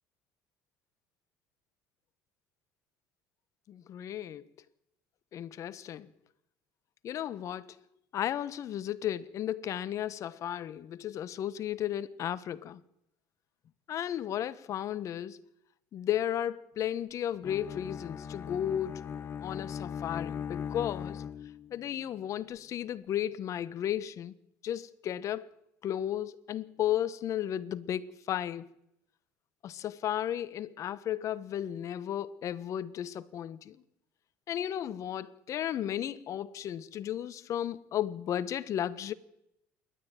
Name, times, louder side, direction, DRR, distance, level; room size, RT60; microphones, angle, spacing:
voice 1, 3.7-4.4 5.3-6.1 7.0-7.8 8.1-12.8 13.9-15.4 15.9-21.2 21.7-24.3 24.6-25.5 25.8-28.7 29.6-33.8 34.5-39.1, left 11 dB, 55° left, 1.2 m, -34 dB
Bowed string instrument, 17.4-21.8, left 8 dB, 35° left, 1.0 m, -39 dB
28.0 x 12.5 x 9.0 m
supercardioid pair, 90°, 6 cm